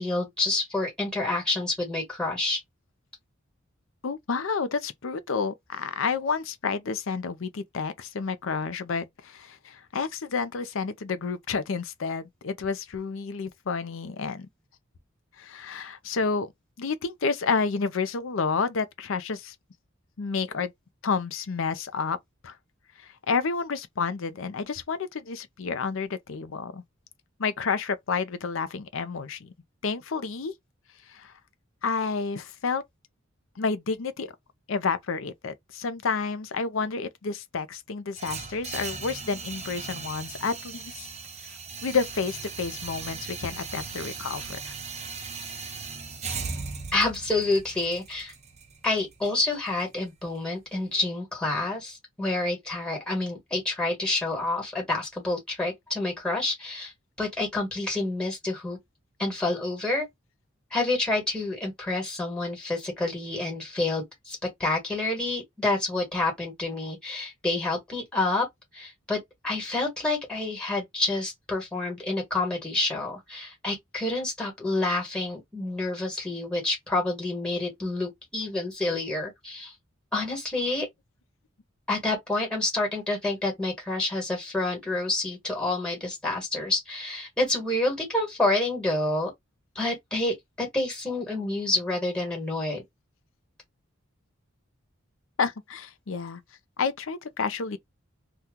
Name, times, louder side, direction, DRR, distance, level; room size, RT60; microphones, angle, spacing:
voice 1, 0.0-2.6 46.9-48.3 48.8-56.9 57.2-58.8 59.2-60.1 60.7-68.5 68.7-79.7 80.1-80.9 81.9-89.3 89.7-92.8, left 2 dB, 5° left, 1.4 m, -28 dB
voice 2, 4.0-14.5 15.4-16.5 16.8-19.5 20.2-20.7 21.0-22.2 22.4-22.5 23.0-26.8 27.4-29.5 29.8-30.5 31.1-31.3 31.8-32.8 33.6-34.3 34.7-41.1 41.8-44.7 95.4-96.4 96.8-97.8, left 5 dB, 70° left, 0.5 m, -30 dB
sound 1, 38.2-50.2, right 4 dB, 35° right, 0.6 m, -38 dB
2.8 x 2.3 x 3.6 m
head